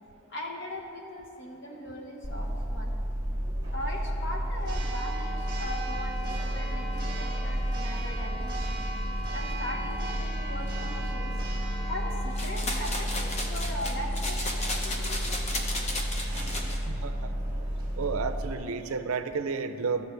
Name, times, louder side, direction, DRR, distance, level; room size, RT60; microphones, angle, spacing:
voice 1, 0.3-2.9 3.7-6.8 7.2-8.9 9.3-11.3 11.8-15.2, left 1 dB, 55° left, 0 dB, 1.3 m, -39 dB
Church bell, 2.2-18.5, equal, 20° right, 1.6 m, -31 dB
sound 1, 12.3-16.8, left 1 dB, 30° left, 0.8 m, -34 dB
voice 2, 16.9-17.3 18.0-20.0, right 5 dB, 80° right, 9 dB, 0.5 m, -31 dB
14.0 x 6.6 x 3.3 m, 3.0 s
head